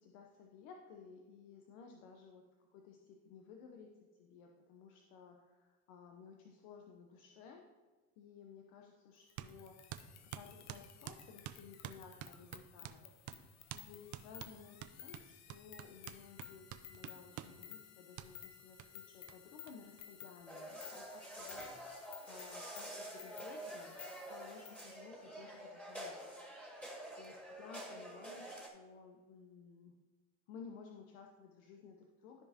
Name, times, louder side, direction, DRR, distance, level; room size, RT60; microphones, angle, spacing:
voice 1, 0.0-2.4 2.7-7.7 8.2-13.5 13.7-24.0 24.3-26.3 26.7-30.0 30.5-32.4, left 6 dB, 70° left, 2 dB, 1.0 m, -56 dB
sound 1, 9.3-24.9, left 10 dB, 40° left, 0.7 m, -56 dB
sound 2, 9.4-9.5 9.9-13.0 13.3-13.4 13.7-13.9 14.1-17.6 18.2-18.3 18.8-18.9 19.3-19.4 19.7-19.8 20.0-20.7, right 13 dB, 45° right, 0.6 m, -48 dB
sound 3, 20.5-28.7, right 1 dB, 5° left, 2.0 m, -48 dB
13.5 x 4.9 x 2.9 m, 1.3 s
supercardioid pair, 95°, 42 cm